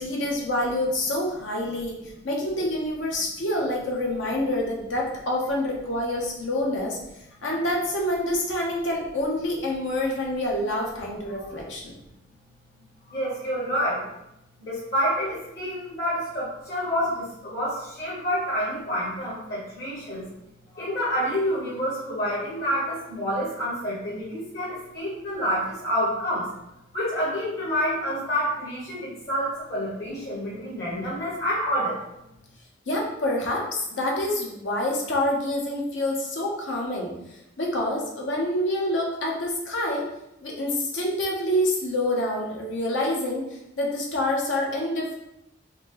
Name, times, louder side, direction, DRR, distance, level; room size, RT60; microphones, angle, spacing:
voice 1, 0.0-2.0 2.2-7.0 7.4-11.9 32.9-37.1 37.6-40.0 40.4-45.1, left 1 dB, 85° left, -2 dB, 1.0 m, -27 dB
voice 2, 13.1-14.0 14.6-20.3 20.7-26.5 26.9-32.0, equal, 55° left, -8 dB, 1.3 m, -28 dB
4.3 x 2.8 x 3.0 m, 0.86 s
head